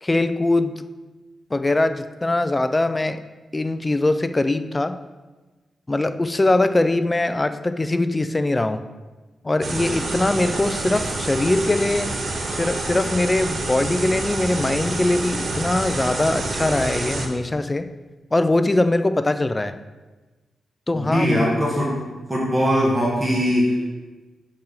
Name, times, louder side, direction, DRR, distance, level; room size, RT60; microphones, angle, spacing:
voice 1, 0.0-0.8 1.5-3.2 3.5-5.0 5.9-8.8 9.4-12.1 12.5-17.9 18.3-19.8 20.9-21.3, left 2 dB, 15° left, 10 dB, 0.3 m, -21 dB
sound 1, 9.6-17.3, right 2 dB, 40° right, 0.9 m, -27 dB
voice 2, 20.9-21.9 22.3-23.8, equal, 5° right, -5 dB, 1.4 m, -20 dB
5.9 x 4.3 x 6.4 m, 1.2 s
wide cardioid pair, 140°, 0 cm